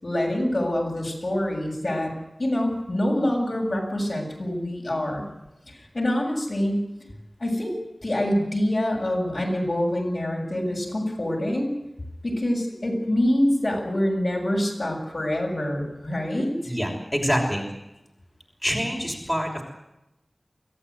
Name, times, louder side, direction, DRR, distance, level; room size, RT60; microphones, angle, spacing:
voice 1, 0.0-2.1 2.4-5.3 5.7-6.9 7.4-7.8 8.0-11.7 12.2-16.7, left 1 dB, 55° left, -1 dB, 7.5 m, -25 dB
voice 2, 16.6-17.7 18.6-19.6, equal, 5° left, 0 dB, 6.0 m, -26 dB
24.5 x 15.0 x 9.6 m, 0.91 s
wide cardioid pair, 55°, 0 cm